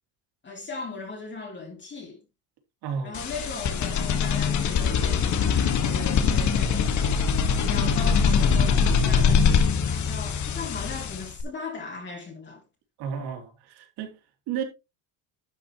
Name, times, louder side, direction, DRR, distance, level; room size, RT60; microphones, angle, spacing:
voice 1, 0.4-2.2 3.0-7.3 7.5-12.6, left 3 dB, 25° left, 3.0 m, -38 dB
voice 2, 2.8-3.2 13.0-14.2 14.5-14.6, right 7 dB, 65° right, 3.2 m, -32 dB
sound 1, 3.1-11.4, left 6 dB, 40° left, 1.7 m, -23 dB
11.5 x 7.8 x 3.1 m
cardioid pair, 135°, 42 cm